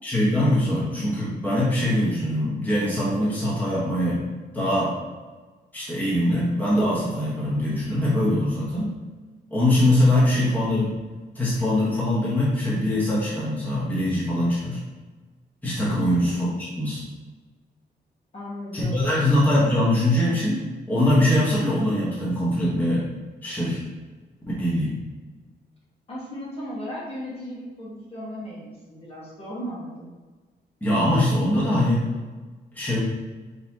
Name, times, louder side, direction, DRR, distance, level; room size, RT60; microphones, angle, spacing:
voice 1, 0.0-4.2 4.5-4.9 5.7-9.0 9.5-10.9 11.3-14.8 15.6-17.0 18.7-23.0 23.4-23.8 24.6-24.9 30.8-32.0 32.7-33.0, left 1 dB, 10° left, -8 dB, 1.2 m, -22 dB
voice 2, 16.0-16.4 18.3-19.2 26.1-30.1, equal, 30° left, -6 dB, 1.3 m, -36 dB
4.3 x 4.0 x 2.8 m, 1.3 s
wide cardioid pair, 175°, 18 cm